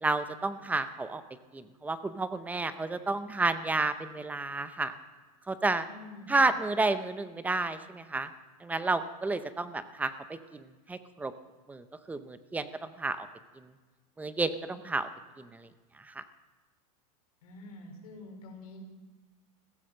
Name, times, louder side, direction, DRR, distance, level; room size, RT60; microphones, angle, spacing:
voice 1, 0.0-1.2 1.5-4.9 5.5-5.8 6.3-8.3 8.6-10.1 10.5-11.3 11.7-13.3 14.2-15.1 15.4-15.7 16.1-16.2, right 3 dB, 10° right, 11 dB, 0.6 m, -31 dB
voice 2, 5.8-6.4 17.4-18.8, left 2 dB, 75° left, 1 dB, 4.7 m, -47 dB
15.5 x 14.0 x 6.4 m, 1.3 s
supercardioid pair, 150°, 19 cm